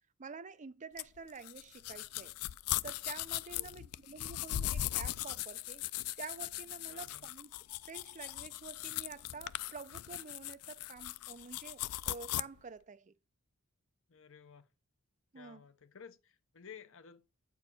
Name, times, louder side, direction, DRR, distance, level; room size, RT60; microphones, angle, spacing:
voice 1, 0.2-2.4 2.8-5.8 6.2-7.5 7.8-13.2 15.3-15.6, right 5 dB, 35° right, 0.6 m, -49 dB
sound 1, 1.0-12.4, left 14 dB, 80° left, 0.4 m, -39 dB
voice 2, 3.5-3.9 6.9-7.3 14.1-14.7 15.3-17.3, left 6 dB, 60° left, 0.9 m, -54 dB
8.6 x 4.6 x 5.6 m
head